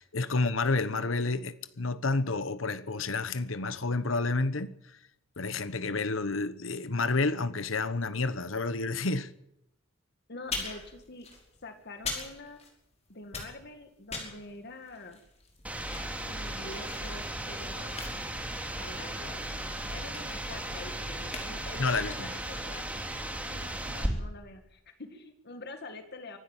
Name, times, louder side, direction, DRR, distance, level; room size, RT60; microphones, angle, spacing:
voice 1, 0.0-5.0 5.4-9.3 21.8-22.3, left 3 dB, 70° left, 1.2 m, -30 dB
voice 2, 10.3-11.3 11.6-12.6 13.1-15.2 15.9-17.9 18.7-22.9 23.5-26.4, left 2 dB, 55° left, 2.0 m, -46 dB
sound 1, 10.4-13.0 13.2-22.1, left 3 dB, 30° left, 5.4 m, -43 dB
sound 2, 15.6-24.1, right 1 dB, 5° right, 3.1 m, -36 dB
24.5 x 12.0 x 9.0 m
head